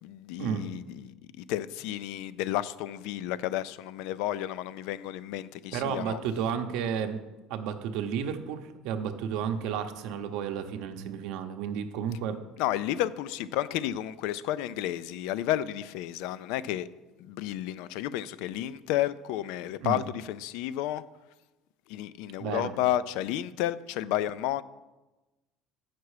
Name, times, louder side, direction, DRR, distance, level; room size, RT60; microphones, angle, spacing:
voice 1, 0.0-6.2 12.6-16.9 17.2-21.0 21.9-24.6, left 13 dB, 75° left, 0.3 m, -31 dB
voice 2, 5.7-7.2 7.5-12.4 19.8-20.0 22.4-22.7, right 8 dB, 70° right, 0.7 m, -32 dB
8.0 x 5.9 x 4.8 m
cardioid pair, 150°, 0 cm